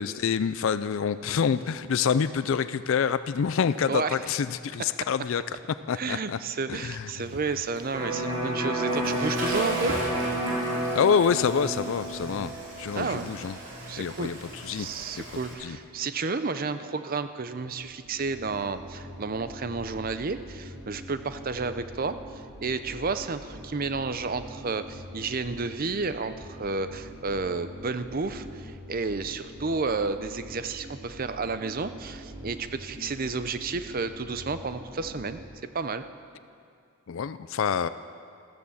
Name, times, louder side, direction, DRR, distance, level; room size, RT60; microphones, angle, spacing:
voice 1, 0.0-5.4 5.7-6.4 6.7-7.1 10.9-12.5 12.8-13.6 14.0-14.9 15.6-15.8 37.1-37.9, left 7 dB, 60° left, 14 dB, 0.4 m, -26 dB
voice 2, 3.9-4.2 5.9-9.9 12.9-13.3 13.9-14.3 14.7-22.2 22.6-35.4 35.7-36.0, right 4 dB, 40° right, 11 dB, 0.6 m, -31 dB
Water / Toilet flush, 7.2-15.5, right 1 dB, 55° right, 3.4 m, -39 dB
Electric guitar, 7.9-15.6, right 1 dB, 20° right, 3.7 m, -32 dB
sound 1, 17.5-35.5, equal, 75° right, 2.0 m, -44 dB
14.0 x 13.5 x 7.1 m, 2.4 s
head